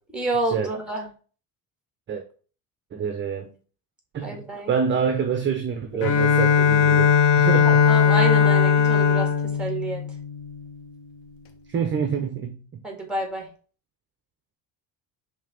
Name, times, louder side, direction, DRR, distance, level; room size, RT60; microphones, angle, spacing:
voice 1, 0.1-1.0 4.2-4.7 7.7-9.3 9.6-10.0 12.8-13.4, right 2 dB, ahead, 1.9 m, -28 dB
voice 2, 2.9-3.5 4.1-7.9 11.7-12.6, right 6 dB, 30° right, 0.7 m, -27 dB
Bowed string instrument, 6.0-10.8, left 7 dB, 85° left, 1.2 m, -19 dB
5.5 x 3.3 x 5.1 m
cardioid pair, 150°, 41 cm